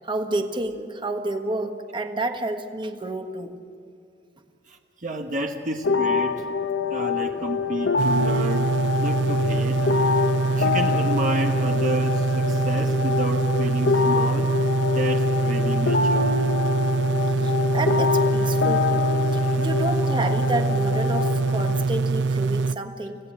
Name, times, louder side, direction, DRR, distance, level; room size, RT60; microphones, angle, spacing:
voice 1, 0.0-3.5 17.4-19.1 19.3-23.2, right 2 dB, 25° right, 6 dB, 1.5 m, -30 dB
voice 2, 4.7-6.5 6.9-9.8 10.5-14.6 14.9-16.5 19.4-19.7, right 1 dB, 45° right, 3 dB, 1.2 m, -31 dB
sound 1, 5.8-21.8, left 5 dB, 85° left, 1.0 m, -25 dB
sound 2, 8.0-22.7, right 4 dB, 80° right, 0.6 m, -24 dB
26.0 x 17.5 x 7.4 m, 2.5 s
head